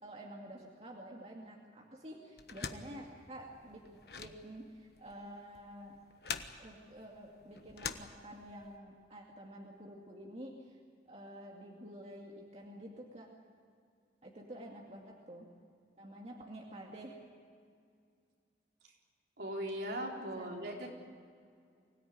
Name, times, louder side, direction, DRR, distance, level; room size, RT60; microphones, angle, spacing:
voice 1, 0.0-3.8 4.2-6.0 6.6-10.8 11.1-13.3 14.2-15.5 16.0-17.2 20.2-20.5, right 1 dB, 35° right, -1 dB, 2.3 m, -49 dB
sound 1, 2.4-8.7, left 6 dB, 65° left, 1.2 m, -45 dB
voice 2, 19.4-20.9, right 1 dB, 70° right, -1 dB, 4.2 m, -39 dB
24.5 x 17.0 x 9.6 m, 2.2 s
head